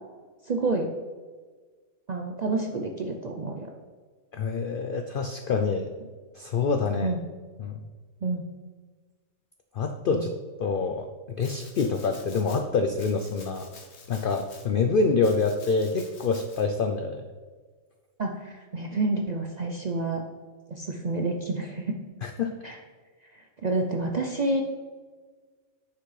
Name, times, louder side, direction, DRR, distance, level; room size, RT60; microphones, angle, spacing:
voice 1, 0.4-0.9 2.1-3.7 7.0-7.2 8.2-8.4 10.1-10.3 18.2-20.2 20.7-22.0 22.6-22.8 23.3-24.6, right 2 dB, 55° right, 2 dB, 0.5 m, -29 dB
voice 2, 4.3-5.9 6.3-7.1 7.6-7.8 9.7-10.3 10.6-13.7 14.1-17.2 22.2-22.6, left 4 dB, 70° left, 6 dB, 0.5 m, -26 dB
Domestic sounds home sounds, 11.4-12.6 13.0-14.7 15.2-16.6, left 4 dB, 55° left, 1.3 m, -49 dB
9.6 x 5.8 x 3.2 m, 1.5 s
omnidirectional pair, 1.5 m